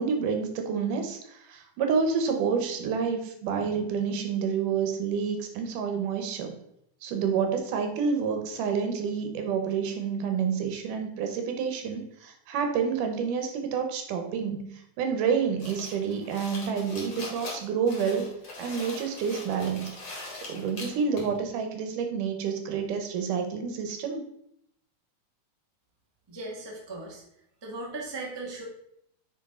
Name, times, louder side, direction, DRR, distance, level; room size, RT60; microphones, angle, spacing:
voice 1, 0.0-6.5 7.0-18.3 18.6-19.9 20.5-24.2, right 6 dB, 90° right, 5 dB, 2.7 m, -29 dB
sound 1, 15.6-21.4, left 2 dB, 40° left, 2.5 m, -41 dB
voice 2, 26.3-27.2 27.6-28.6, right 2 dB, 15° right, -2 dB, 1.0 m, -37 dB
9.0 x 5.1 x 3.8 m, 0.74 s
omnidirectional pair, 3.6 m